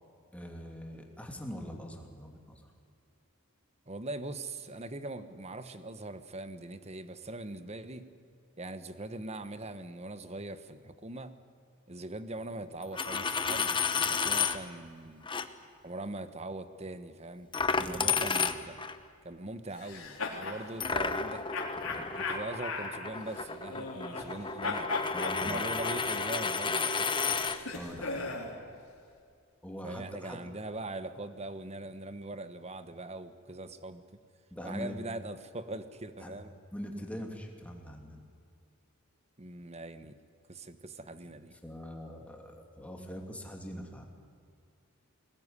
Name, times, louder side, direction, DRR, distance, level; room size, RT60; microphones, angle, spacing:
voice 1, 0.3-2.6 17.8-18.3 21.8-22.1 25.1-25.6 27.7-28.3 29.6-30.4 34.5-35.0 36.2-36.4 36.7-38.2 41.6-44.1, equal, 5° left, 2 dB, 2.9 m, -43 dB
voice 2, 3.9-8.1 8.6-11.3 11.9-15.3 15.8-17.5 17.8-18.8 19.2-21.4 22.1-24.9 25.4-27.1 29.8-34.0 34.6-36.5 39.4-40.2 40.5-41.5, right 2 dB, 30° right, 11 dB, 1.2 m, -41 dB
Coin (dropping), 12.8-14.6 15.3-15.5 17.5-19.0 20.8-27.6, left 5 dB, 25° left, 1.0 m, -32 dB
sound 1, 19.7-20.6 21.5-24.4 24.6-28.6, left 3 dB, 90° left, 4.2 m, -38 dB
22.0 x 19.5 x 9.8 m, 2.3 s
head